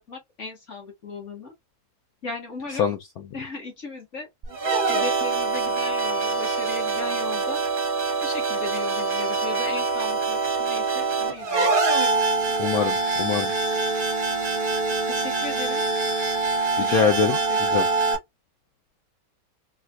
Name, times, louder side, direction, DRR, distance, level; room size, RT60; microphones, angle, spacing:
voice 1, 0.0-1.5 2.2-2.9 3.3-4.3 4.9-7.6 8.2-11.8 15.1-15.8 16.8-17.8, left 3 dB, 40° left, 1.5 m, -37 dB
sound 1, 4.4-18.2, right 4 dB, 45° right, 0.7 m, -24 dB
voice 2, 12.6-13.5 16.8-17.8, left 7 dB, 75° left, 0.8 m, -23 dB
4.1 x 2.4 x 2.3 m
omnidirectional pair, 2.1 m